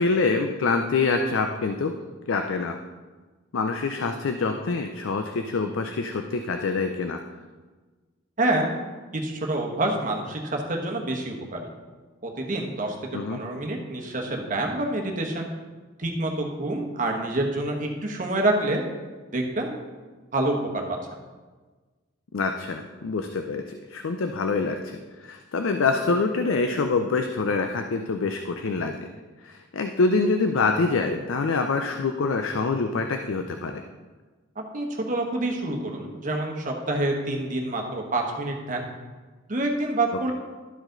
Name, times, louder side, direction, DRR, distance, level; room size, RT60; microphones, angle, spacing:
voice 1, 0.0-1.9 2.3-2.8 3.5-7.2 13.1-13.4 22.3-28.9 29.4-33.8, left 4 dB, 75° left, 6 dB, 0.5 m, -25 dB
voice 2, 9.1-11.7 12.2-12.9 13.3-15.5 16.0-18.8 19.3-19.8 20.3-20.8 34.7-38.8 39.5-40.3, right 2 dB, 40° right, 1 dB, 1.1 m, -27 dB
12.0 x 4.8 x 3.8 m, 1.3 s
head